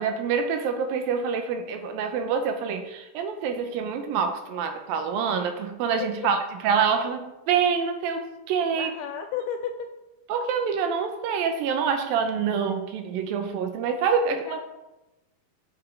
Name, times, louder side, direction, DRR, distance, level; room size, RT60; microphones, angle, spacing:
voice 1, 0.0-8.9 10.3-14.6, right 6 dB, 85° right, 6 dB, 2.6 m, -26 dB
voice 2, 8.8-9.9 14.3-14.8, left 7 dB, 80° left, 6 dB, 1.9 m, -33 dB
9.8 x 6.7 x 3.4 m, 1.0 s
omnidirectional pair, 4.1 m